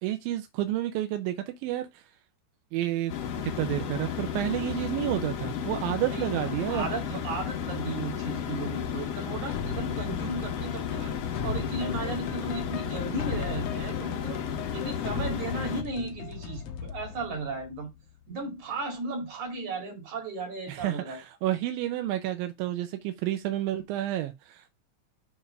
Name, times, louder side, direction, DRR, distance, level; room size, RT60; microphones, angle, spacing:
voice 1, 0.0-2.0 2.7-6.9 20.7-24.7, right 13 dB, 90° right, 2.5 m, -30 dB
sound 1, 3.1-15.8, left 8 dB, 65° left, 1.6 m, -33 dB
voice 2, 6.7-14.4 14.7-17.9 18.3-21.2, right 3 dB, 60° right, 3.5 m, -35 dB
sound 2, 9.5-18.4, left 6 dB, 85° left, 1.4 m, -38 dB
7.2 x 3.4 x 5.4 m
omnidirectional pair, 4.1 m